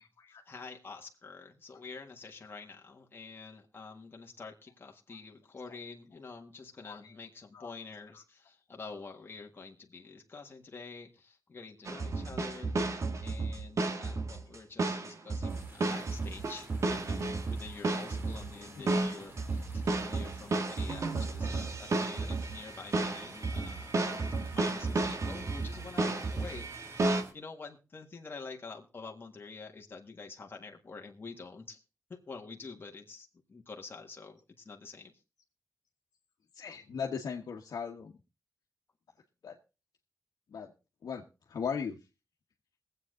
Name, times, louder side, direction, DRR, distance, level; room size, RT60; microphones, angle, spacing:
voice 1, 0.3-12.8 13.2-31.8 32.1-35.1, left 4 dB, 35° left, 2 dB, 1.6 m, -47 dB
sound 1, 11.9-27.2, right 3 dB, 55° right, 1.6 m, -32 dB
sound 2, 15.5-27.3, right 1 dB, 35° right, 2.7 m, -53 dB
voice 2, 36.5-38.2 39.4-39.6 40.5-40.7 41.0-42.0, left 6 dB, 80° left, 0 dB, 1.3 m, -38 dB
22.0 x 8.1 x 3.8 m, 0.30 s
wide cardioid pair, 125°, 6 cm